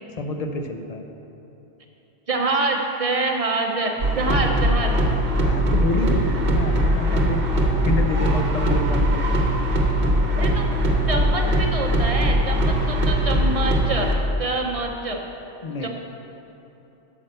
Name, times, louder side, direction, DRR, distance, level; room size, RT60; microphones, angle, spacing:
voice 1, 0.2-1.1 4.3-4.7 4.9-9.3 15.6-15.9, left 2 dB, 40° left, 5 dB, 0.6 m, -29 dB
voice 2, 2.3-4.9 10.4-10.7 11.1-14.1 14.4-15.2 15.8-15.9, right 3 dB, 35° right, 2 dB, 0.8 m, -25 dB
sound 1, 4.0-14.1, equal, 60° right, 1.1 m, -21 dB
8.7 x 6.0 x 6.6 m, 2.9 s
omnidirectional pair, 1.1 m